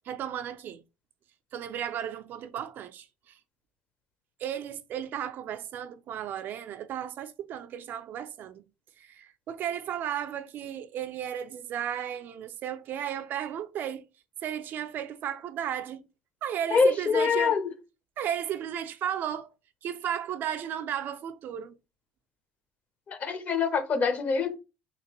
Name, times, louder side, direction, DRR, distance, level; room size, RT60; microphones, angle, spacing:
voice 1, 0.1-0.8 1.5-3.4 4.4-8.6 9.0-14.0 14.4-16.0 16.4-17.6 18.2-19.5 19.8-21.8, right 9 dB, 55° right, 0.4 m, -34 dB
voice 2, 16.7-17.7 23.1-24.6, left 5 dB, 40° left, 0.7 m, -25 dB
3.1 x 2.8 x 2.9 m
supercardioid pair, 95°, 4 cm